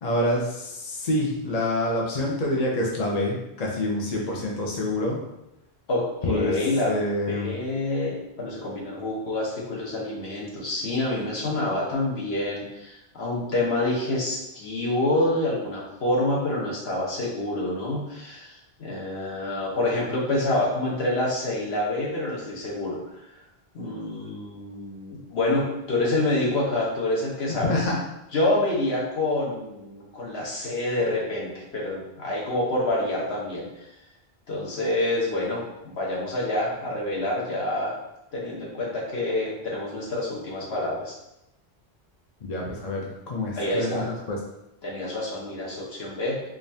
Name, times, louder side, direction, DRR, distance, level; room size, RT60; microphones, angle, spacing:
voice 1, 0.0-5.2 6.2-6.6 6.9-7.5 27.7-28.0 42.4-44.0 44.3-44.4, left 1 dB, 45° left, -2 dB, 0.7 m, -27 dB
voice 2, 5.9-6.9 7.3-23.0 23.7-27.9 28.3-33.9 34.5-37.9 38.3-41.1 43.6-44.2 44.8-46.3, left 2 dB, 70° left, -4 dB, 1.3 m, -27 dB
5.1 x 2.5 x 2.7 m, 0.90 s
omnidirectional pair, 1.1 m